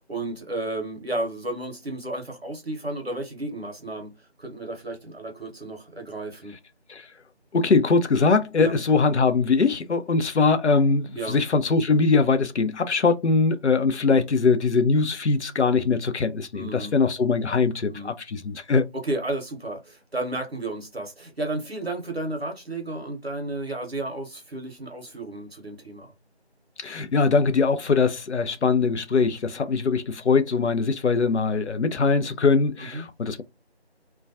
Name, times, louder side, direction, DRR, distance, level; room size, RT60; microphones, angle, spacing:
voice 1, 0.0-6.6 8.5-8.7 11.1-11.4 16.5-16.9 17.9-18.2 18.9-26.1 32.8-33.0, right 2 dB, 65° right, 0.8 m, -32 dB
voice 2, 7.5-18.9 26.8-33.4, left 4 dB, 85° left, 0.5 m, -22 dB
2.2 x 2.2 x 2.5 m
figure-of-eight pair, 175°, 33 cm